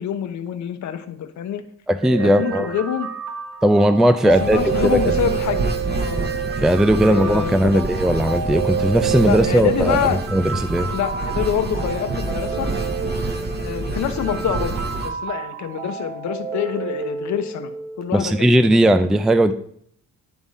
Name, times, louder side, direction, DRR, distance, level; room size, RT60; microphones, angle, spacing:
voice 1, 0.0-1.6 2.2-3.1 4.2-6.3 7.0-7.8 9.2-10.2 10.8-12.7 13.6-17.7 18.0-18.5 18.9-19.0, left 8 dB, 70° left, 8 dB, 0.9 m, -26 dB
voice 2, 1.9-2.7 3.6-5.2 6.6-10.0 10.3-10.9 18.1-19.5, equal, ahead, 11 dB, 0.4 m, -17 dB
sound 1, 2.0-18.0, right 7 dB, 60° right, 1.1 m, -29 dB
sound 2, 4.3-15.1, right 3 dB, 35° right, 1.1 m, -28 dB
10.5 x 3.6 x 4.1 m, 0.64 s
cardioid pair, 90°, 30 cm